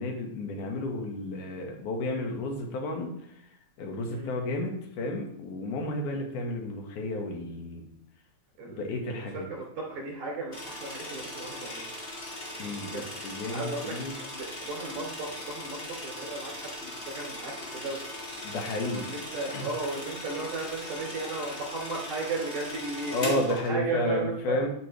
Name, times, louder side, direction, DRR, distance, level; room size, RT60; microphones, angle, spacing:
voice 1, 0.0-3.2 3.8-7.8 8.7-9.5 12.6-14.1 18.4-19.1 19.5-19.7 23.1-24.7, left 2 dB, 85° left, 2 dB, 2.9 m, -32 dB
voice 2, 8.6-12.0 12.9-13.1 13.5-13.9 14.3-18.0 18.9-24.6, right 3 dB, 70° right, -2 dB, 4.2 m, -35 dB
sound 1, 10.5-23.7, left 1 dB, 20° left, 2.0 m, -39 dB
12.0 x 6.3 x 3.1 m, 0.73 s
omnidirectional pair, 3.5 m